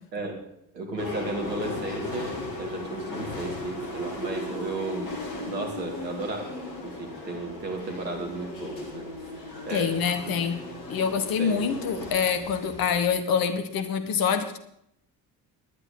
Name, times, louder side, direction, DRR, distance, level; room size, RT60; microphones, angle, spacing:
voice 1, 0.7-9.1 9.7-10.0 11.4-11.6, right 2 dB, 75° right, 2 dB, 2.7 m, -34 dB
sound 1, 1.0-13.0, left 2 dB, 80° left, 1.9 m, -37 dB
voice 2, 9.7-10.6 10.9-14.6, left 6 dB, 45° left, 9 dB, 1.6 m, -26 dB
19.0 x 11.0 x 3.9 m, 0.73 s
figure-of-eight pair, 55°, 49 cm